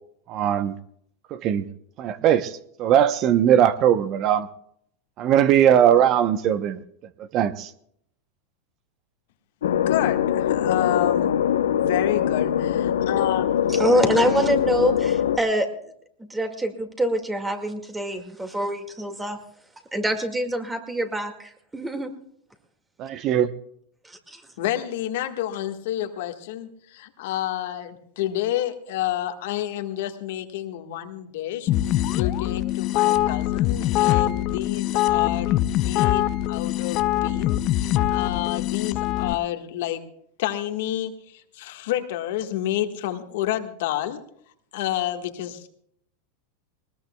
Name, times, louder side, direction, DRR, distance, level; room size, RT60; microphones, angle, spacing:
voice 1, 0.3-0.7 1.3-1.7 2.0-4.5 5.2-6.8 7.3-7.7 23.0-23.5, right 10 dB, 40° right, 13 dB, 0.8 m, -20 dB
sound 1, 9.6-15.4, left 9 dB, 90° left, 0.9 m, -22 dB
voice 2, 9.6-11.3 11.7-13.5 24.6-40.0 40.4-44.2 44.7-45.7, left 12 dB, 70° left, 6 dB, 1.6 m, -29 dB
voice 3, 13.7-15.7 16.3-19.4 19.9-22.1 24.1-24.4, right 1 dB, 10° right, 6 dB, 2.1 m, -25 dB
sound 2, 31.7-39.3, left 14 dB, 45° left, 0.7 m, -23 dB
20.5 x 20.0 x 2.3 m, 0.68 s
hypercardioid pair, 120°, 0 cm